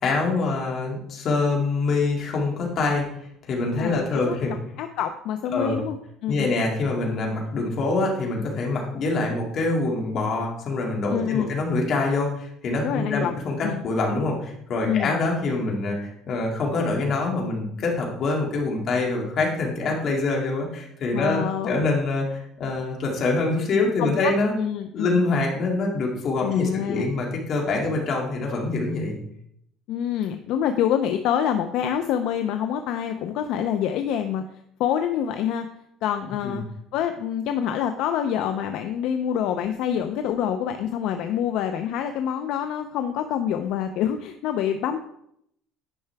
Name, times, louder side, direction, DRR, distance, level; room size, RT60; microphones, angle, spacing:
voice 1, 0.0-3.0 3.5-4.5 5.5-5.8 6.3-24.5 24.9-29.2 36.4-36.6, left 3 dB, 45° left, -1 dB, 2.3 m, -25 dB
voice 2, 3.8-4.4 4.8-6.0 6.2-6.6 11.1-11.5 12.8-13.4 13.6-13.8 14.9-15.1 21.1-21.9 24.0-24.3 24.6-25.2 26.4-27.1 29.9-34.4 34.8-35.7 36.0-36.6 36.9-45.0, left 9 dB, 65° left, 7 dB, 0.5 m, -26 dB
10.0 x 5.6 x 3.4 m, 0.73 s
cardioid pair, 135°, 0 cm